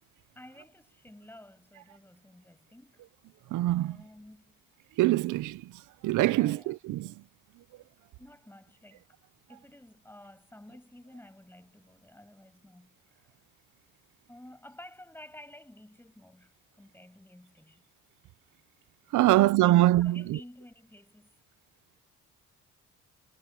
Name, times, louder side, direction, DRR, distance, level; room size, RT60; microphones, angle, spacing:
voice 1, 0.3-3.1 3.8-4.5 6.3-6.8 8.2-9.2 9.5-13.3 14.3-17.8 19.2-21.4, left 1 dB, 5° left, 8.0 m, -52 dB
voice 2, 3.5-4.0 5.0-5.6 6.0-7.1 19.1-20.4, right 16 dB, 85° right, 0.7 m, -23 dB
cardioid pair, 90°, 30 cm